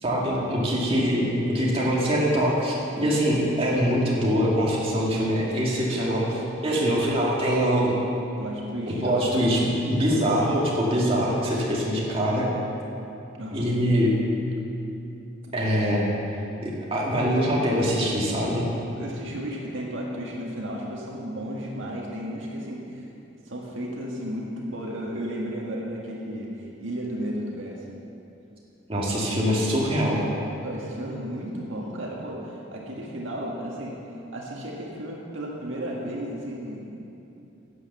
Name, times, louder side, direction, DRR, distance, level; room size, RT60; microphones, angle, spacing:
voice 1, 0.0-8.0 8.9-12.5 13.5-14.1 15.5-16.1 16.6-18.7 28.9-30.2, equal, 30° right, -5 dB, 2.1 m, -23 dB
voice 2, 8.4-9.2 13.4-13.7 15.4-15.5 18.9-23.1 23.5-27.9 30.1-34.0 34.3-37.0, equal, 75° right, -2 dB, 1.7 m, -34 dB
11.5 x 8.6 x 6.9 m, 2.8 s
head